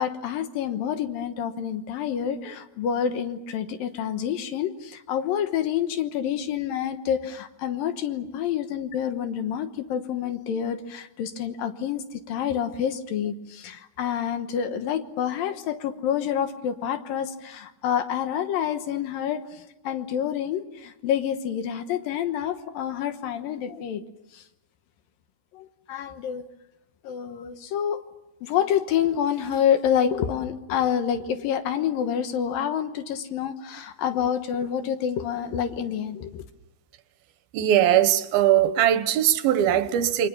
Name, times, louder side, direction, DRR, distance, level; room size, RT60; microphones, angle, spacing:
voice 1, 0.0-24.0 24.3-24.4 25.5-26.5 27.0-28.0 28.4-36.4, left 9 dB, 75° left, 2.8 m, -28 dB
voice 2, 37.5-40.3, right 11 dB, 75° right, 2.9 m, -20 dB
29.5 x 23.0 x 7.2 m
omnidirectional pair, 4.4 m